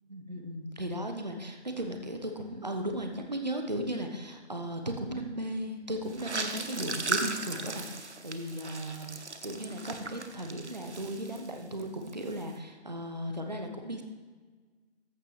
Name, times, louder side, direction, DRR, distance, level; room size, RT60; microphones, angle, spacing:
voice 1, 0.1-14.0, right 1 dB, 40° right, 4 dB, 0.8 m, -36 dB
sound 1, 6.1-11.8 12.1-12.5, right 3 dB, 75° right, 1.0 m, -37 dB
14.0 x 6.5 x 3.3 m, 1.4 s
figure-of-eight pair, 170°, 34 cm